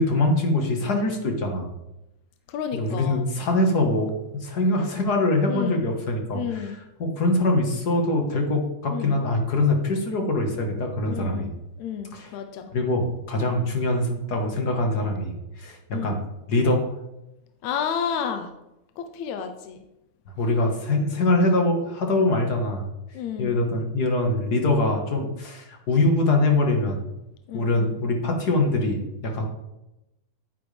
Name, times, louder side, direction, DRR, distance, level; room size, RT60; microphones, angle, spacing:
voice 1, 0.0-1.7 2.7-11.5 12.1-12.3 12.7-16.2 16.5-16.9 20.4-22.9 23.4-27.0 27.5-29.5, left 2 dB, 45° left, 3 dB, 1.4 m, -23 dB
voice 2, 2.5-3.2 5.5-5.8 6.3-6.8 8.9-9.2 11.1-11.5 11.8-12.7 15.9-16.2 17.6-18.5 19.0-19.8 23.1-23.6 27.5-28.0, left 8 dB, 75° left, 7 dB, 2.0 m, -31 dB
11.5 x 9.5 x 3.4 m, 0.91 s
omnidirectional pair, 3.6 m